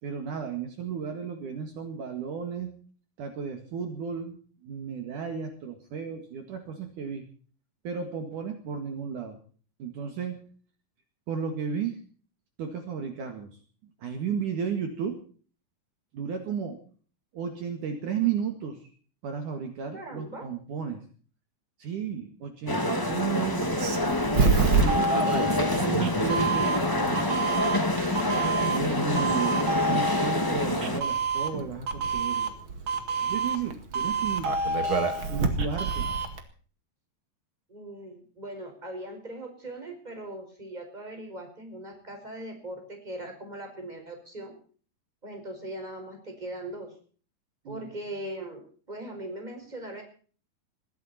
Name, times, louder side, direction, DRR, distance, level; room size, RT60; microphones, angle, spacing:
voice 1, 0.0-2.7 3.2-7.2 7.8-9.4 9.8-10.4 11.3-12.0 12.6-13.6 14.0-15.2 16.1-16.8 17.3-18.9 19.2-21.0 21.8-23.7 24.4-27.4 28.3-32.5 33.2-36.1 47.6-47.9, right 6 dB, 60° right, 6 dB, 3.3 m, -34 dB
voice 2, 19.9-20.5 37.7-44.6 45.2-46.9 47.6-50.0, right 1 dB, 10° right, 3 dB, 5.0 m, -40 dB
sound 1, 22.7-31.0, left 1 dB, 20° left, 0.5 m, -27 dB
Doorbell, 23.6-36.4, right 4 dB, 40° right, 2.3 m, -27 dB
21.0 x 15.5 x 4.3 m, 0.42 s
omnidirectional pair, 4.3 m